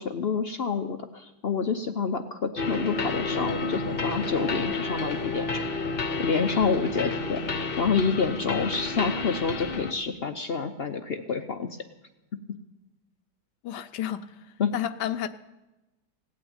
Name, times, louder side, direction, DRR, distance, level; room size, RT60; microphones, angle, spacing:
voice 1, 0.0-5.6 6.2-11.8 14.6-14.8, left 5 dB, 60° left, 0.6 m, -28 dB
sound 1, 2.6-9.9, left 3 dB, 40° left, 0.9 m, -30 dB
voice 2, 13.6-14.3 14.7-15.3, left 11 dB, 75° left, 1.3 m, -30 dB
17.5 x 8.6 x 8.8 m
omnidirectional pair, 1.8 m